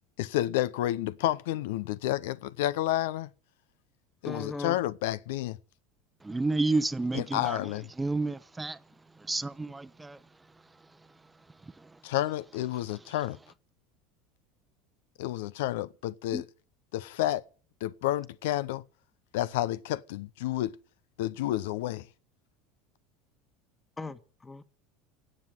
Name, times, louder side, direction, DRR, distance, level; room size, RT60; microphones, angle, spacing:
voice 1, 0.2-3.3 4.2-5.6 7.1-7.8 12.0-13.4 15.2-16.4 16.9-17.4 17.8-18.8 19.3-20.7 21.2-22.1, left 14 dB, 80° left, 0.7 m, -30 dB
voice 2, 4.2-4.8 16.3-16.4 24.0-24.6, left 3 dB, 15° left, 1.5 m, -37 dB
voice 3, 6.2-12.1 12.7-13.2, right 3 dB, 10° right, 0.8 m, -33 dB
17.0 x 7.6 x 9.8 m
supercardioid pair, 115°, 0 cm